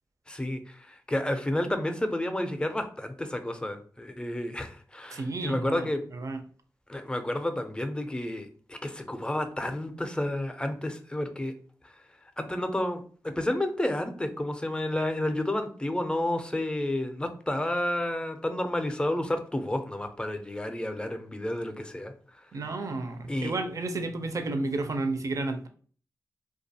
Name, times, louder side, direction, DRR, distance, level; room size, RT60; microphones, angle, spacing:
voice 1, 0.3-6.0 6.9-11.5 11.8-11.9 12.4-22.1 23.3-23.6, left 1 dB, 15° left, 7 dB, 0.5 m, -31 dB
voice 2, 5.1-6.4 22.5-25.7, right 2 dB, 55° right, 7 dB, 0.5 m, -32 dB
2.4 x 2.3 x 2.7 m, 0.43 s
cardioid pair, 50°, 7 cm